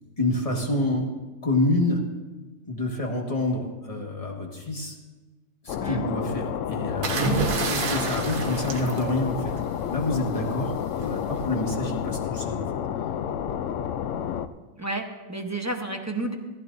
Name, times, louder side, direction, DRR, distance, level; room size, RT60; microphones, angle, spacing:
voice 1, 0.2-1.1 1.4-2.1 2.7-4.9 5.6-7.2 7.6-9.6 9.9-12.6, left 1 dB, 25° left, 0 dB, 1.7 m, -27 dB
sound 1, 5.7-14.5, left 9 dB, 70° left, 0.8 m, -30 dB
sound 2, 7.0-9.8 11.0-11.3, right 4 dB, 85° right, 1.6 m, -28 dB
voice 2, 14.8-16.3, right 2 dB, 15° right, 3 dB, 0.7 m, -31 dB
15.0 x 15.0 x 2.6 m, 1.2 s
omnidirectional pair, 1.5 m